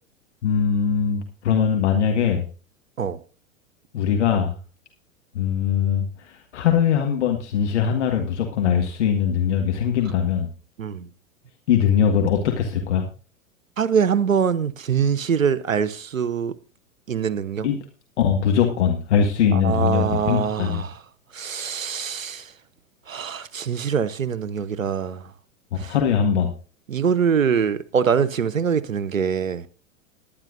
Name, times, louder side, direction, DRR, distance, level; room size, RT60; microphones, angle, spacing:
voice 1, 0.4-2.5 3.9-4.5 5.4-10.5 11.7-13.0 17.6-17.8 18.2-20.8 25.7-26.5, left 8 dB, 60° left, 1.8 m, -21 dB
voice 2, 13.8-16.5 17.1-17.7 19.5-20.9 21.3-22.4 23.1-25.2 25.8-25.9 26.9-29.7, right 7 dB, 80° right, 0.9 m, -23 dB
20.5 x 10.0 x 2.6 m
figure-of-eight pair, 95°, 40 cm